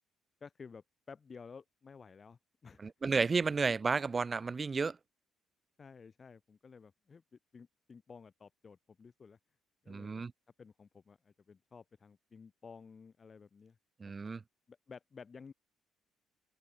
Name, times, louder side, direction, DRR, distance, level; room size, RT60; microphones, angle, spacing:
voice 1, 0.4-2.8 3.1-3.4 5.8-7.2 7.5-9.4 9.8-10.2 10.6-13.8 14.7-15.5, left 5 dB, 25° left, 8.0 m, -54 dB
voice 2, 2.8-5.0 9.9-10.3 14.0-14.4, right 4 dB, 25° right, 2.9 m, -32 dB
open air
cardioid pair, 150°, 0 cm